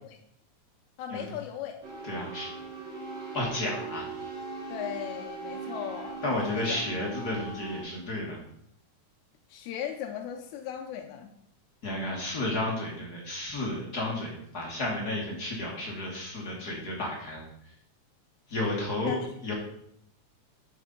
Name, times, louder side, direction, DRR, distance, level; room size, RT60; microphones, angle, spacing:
voice 1, 1.0-1.8 4.7-6.8 9.5-11.3 19.0-19.3, left 9 dB, 80° left, 4 dB, 1.8 m, -37 dB
sound 1, 1.8-7.8, right 3 dB, 40° right, 3.4 m, -40 dB
voice 2, 2.0-2.5 3.3-4.1 6.2-8.4 11.8-17.5 18.5-19.5, left 1 dB, 45° left, -2 dB, 1.3 m, -32 dB
7.5 x 7.1 x 3.8 m, 0.72 s
omnidirectional pair, 3.7 m